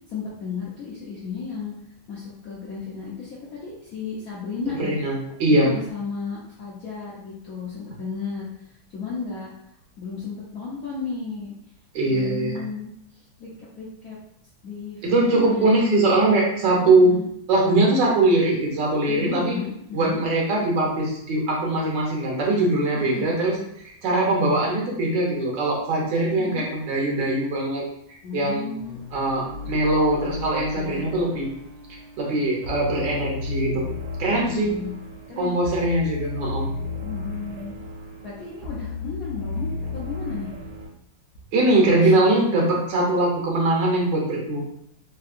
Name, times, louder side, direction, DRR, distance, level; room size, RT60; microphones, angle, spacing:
voice 1, 0.1-1.7 2.1-5.0 5.5-8.5 8.9-9.5 10.0-11.6 12.1-13.5 13.8-14.2 14.6-15.8 16.8-17.3 19.1-20.2 23.1-23.3 26.4-26.7 28.2-29.0 30.7-31.1 34.2-34.9 35.3-35.6 37.0-37.8 38.2-40.5 42.0-42.2, left 5 dB, 70° left, -7 dB, 0.8 m, -34 dB
voice 2, 4.7-5.7 11.9-12.6 15.0-17.1 17.5-19.6 19.9-23.5 24.0-27.8 28.3-28.7 29.1-31.5 32.2-33.8 34.2-34.7 35.4-36.7 41.5-44.6, right 2 dB, 70° right, -2 dB, 1.4 m, -21 dB
sound 1, 28.8-40.9, left 3 dB, 85° right, 1.5 m, -34 dB
3.5 x 2.7 x 2.4 m, 0.73 s
omnidirectional pair, 2.2 m